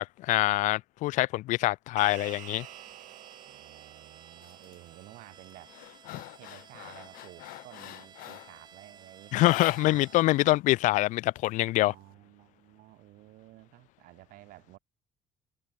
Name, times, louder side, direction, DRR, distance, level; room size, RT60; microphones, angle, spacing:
voice 1, 0.0-2.7 9.3-11.9, left 17 dB, 60° left, 0.4 m, -25 dB
sound 1, 2.0-6.6, right 15 dB, 60° right, 7.2 m, -50 dB
sound 2, 2.1-10.2, right 7 dB, 30° right, 2.1 m, -54 dB
voice 2, 3.4-5.7 6.1-9.4 9.7-10.5 11.8-14.8, right 18 dB, 80° right, 5.4 m, -53 dB
sound 3, 4.4-4.8 5.2-8.6 9.4-10.3 10.6-10.7 11.1-12.0, left 20 dB, 85° left, 1.0 m, -43 dB
cardioid pair, 175°, 14 cm